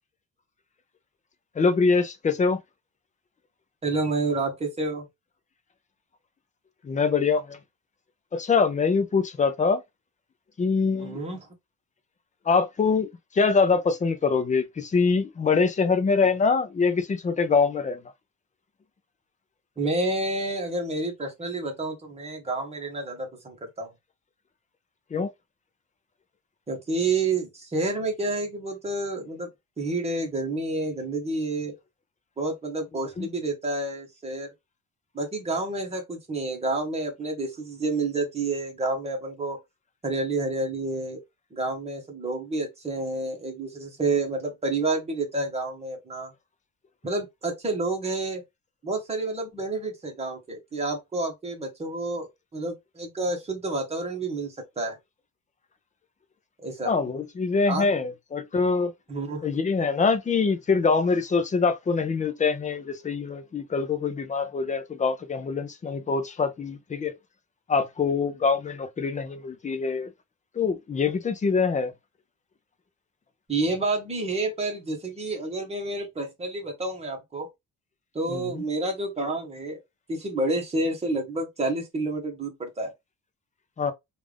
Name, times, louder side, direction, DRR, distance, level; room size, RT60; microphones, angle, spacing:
voice 1, 1.6-2.6 6.8-7.6 8.3-9.8 10.6-11.2 12.5-13.1 13.3-18.0 25.1-25.3 33.2-33.3 56.8-58.9 59.4-67.1 67.7-70.1 70.6-71.9 78.3-78.6 83.8-83.9, left 4 dB, 25° left, 0.5 m, -24 dB
voice 2, 3.8-5.0 11.0-11.5 19.8-23.9 26.7-29.5 29.8-31.7 32.4-34.5 35.1-39.6 40.0-41.2 41.5-46.3 47.0-48.4 48.8-55.0 56.6-56.9 57.7-57.9 59.1-59.5 73.5-77.5 78.1-79.8 80.1-82.9, right 2 dB, 20° right, 1.2 m, -29 dB
3.3 x 2.5 x 3.3 m
cardioid pair, 155°, 32 cm